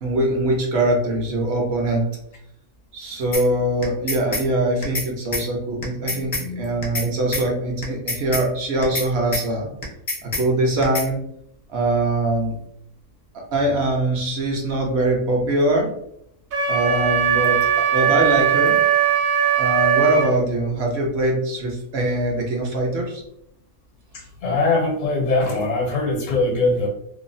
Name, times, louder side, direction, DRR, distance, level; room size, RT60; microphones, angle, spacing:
voice 1, 0.0-2.1 2.9-9.7 10.2-11.2 11.7-12.5 13.3-15.9 16.7-17.6 17.9-18.8 19.6-23.2, right 1 dB, 55° right, 0 dB, 0.8 m, -22 dB
sound 1, 3.3-3.4 3.8-4.4 4.8-5.1 5.3-5.4 5.8-6.4 6.8-7.1 7.3-7.4 7.8-8.4 8.8-9.1 9.3-9.4 9.8-10.4 10.8-11.1, left 2 dB, 40° left, 0.4 m, -26 dB
voice 2, 6.1-7.1 24.1-26.9, left 3 dB, 70° left, 1 dB, 1.0 m, -23 dB
Wind instrument woodwind instrument, 16.5-20.3, right 8 dB, 75° right, 1.0 m, -19 dB
3.0 x 2.0 x 2.5 m, 0.73 s
omnidirectional pair, 1.5 m